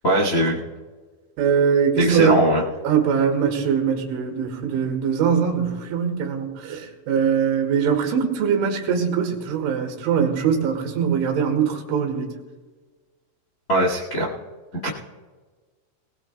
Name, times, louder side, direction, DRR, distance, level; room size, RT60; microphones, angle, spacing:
voice 1, 0.0-0.6 2.0-2.6 13.7-14.3 14.8-14.9, equal, 50° left, -2 dB, 0.9 m, -20 dB
voice 2, 1.4-2.4 2.8-12.4, right 7 dB, 85° right, 3 dB, 4.0 m, -22 dB
21.0 x 19.5 x 2.3 m, 1.4 s
omnidirectional pair, 5.5 m